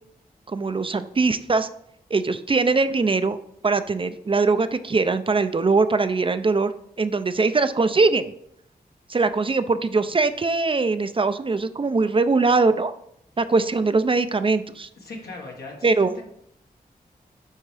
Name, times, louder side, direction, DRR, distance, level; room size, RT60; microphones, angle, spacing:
voice 1, 0.5-1.7 2.1-3.4 3.6-6.7 7.0-8.3 9.1-12.9 13.4-14.9 15.8-16.1, right 3 dB, 35° right, 12 dB, 0.4 m, -21 dB
voice 2, 15.0-16.2, left 2 dB, 85° left, 0 dB, 1.6 m, -38 dB
9.9 x 3.6 x 3.3 m, 0.74 s
wide cardioid pair, 70°, 16 cm